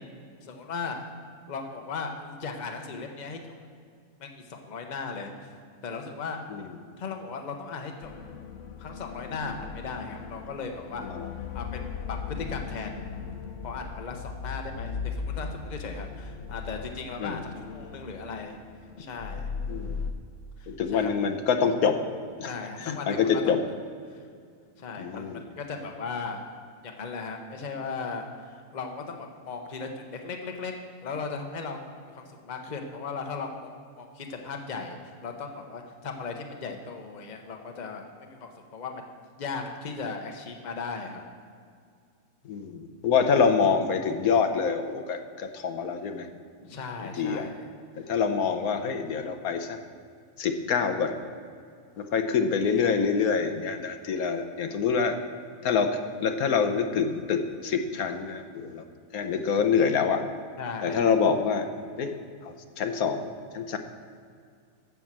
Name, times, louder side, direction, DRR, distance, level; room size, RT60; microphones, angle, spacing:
voice 1, 0.4-1.0 1.5-3.5 4.2-5.3 5.8-6.4 7.0-8.1 8.8-11.1 11.5-13.0 13.6-18.6 19.0-19.4 20.6-21.1 22.4-23.4 24.1-24.2 24.8-26.4 26.8-30.7 31.0-33.7 34.0-39.1 39.4-41.2 42.7-42.8 46.6-47.7 48.7-48.8 60.6-61.0, left 4 dB, 35° left, 3 dB, 1.0 m, -37 dB
sound 1, 8.0-20.1, left 5 dB, 60° left, 1.0 m, -38 dB
voice 2, 20.7-22.0 22.4-22.5 22.8-23.6 25.0-25.4 42.5-46.3 47.2-47.5 48.0-49.8 50.4-51.1 52.0-55.2 55.6-55.9 56.2-58.8 59.1-60.2 60.8-61.7 62.0-62.1 62.4-63.8, left 6 dB, 85° left, 7 dB, 1.3 m, -26 dB
12.5 x 6.1 x 7.4 m, 2.2 s
omnidirectional pair, 1.5 m